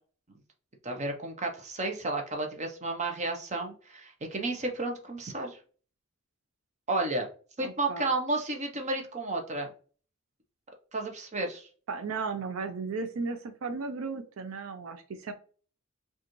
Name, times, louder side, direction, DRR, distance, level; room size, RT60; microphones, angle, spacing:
voice 1, 0.8-5.6 6.9-7.3 7.6-9.7 10.9-11.7, right 2 dB, 35° right, 3 dB, 0.7 m, -32 dB
voice 2, 7.6-8.1 11.9-15.3, right 4 dB, 75° right, 9 dB, 0.4 m, -35 dB
4.9 x 2.4 x 3.0 m, 0.40 s
head